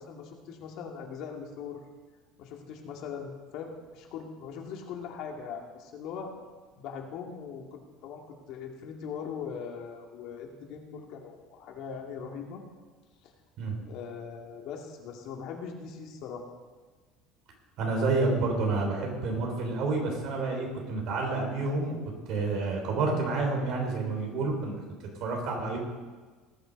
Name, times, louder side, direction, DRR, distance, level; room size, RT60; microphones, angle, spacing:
voice 1, 0.0-1.8 2.4-6.3 6.8-12.6 13.2-13.3 13.8-16.5, left 6 dB, 65° left, 1 dB, 2.2 m, -40 dB
voice 2, 17.8-22.0 22.3-24.8 25.2-25.8, right 3 dB, 55° right, 1 dB, 3.9 m, -29 dB
19.0 x 6.9 x 5.3 m, 1.4 s
cardioid pair, 130°, 0 cm